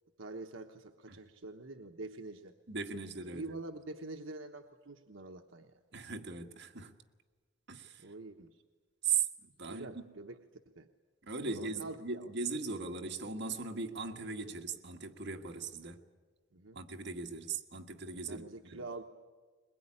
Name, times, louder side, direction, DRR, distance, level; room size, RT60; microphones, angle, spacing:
voice 1, 0.2-2.5 3.3-5.8 8.0-8.6 9.7-10.4 10.7-10.9 11.4-12.3 14.5-14.6 16.5-16.8 18.3-19.0, right 2 dB, 80° right, 1.1 m, -46 dB
voice 2, 2.7-3.6 5.9-6.9 7.7-8.1 9.0-10.0 11.2-16.0 16.7-18.8, right 5 dB, 60° right, 1.7 m, -38 dB
22.0 x 21.5 x 9.9 m
head